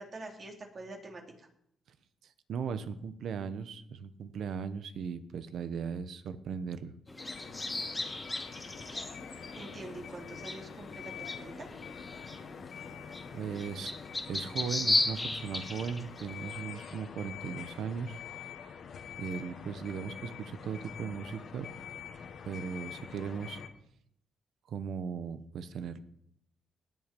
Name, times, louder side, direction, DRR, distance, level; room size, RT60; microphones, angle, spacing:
voice 1, 0.0-1.5 9.6-11.7, right 2 dB, 45° right, 1 dB, 3.5 m, -45 dB
voice 2, 2.2-6.9 13.3-13.9 14.3-18.2 19.2-21.7 22.4-23.6 24.7-26.0, right 6 dB, 75° right, 12 dB, 1.1 m, -38 dB
sound 1, 7.1-16.5, left 2 dB, 20° left, 2.4 m, -36 dB
sound 2, 7.2-23.7, left 7 dB, 65° left, 1.6 m, -46 dB
19.5 x 7.4 x 5.4 m, 0.71 s
cardioid pair, 85°, 0 cm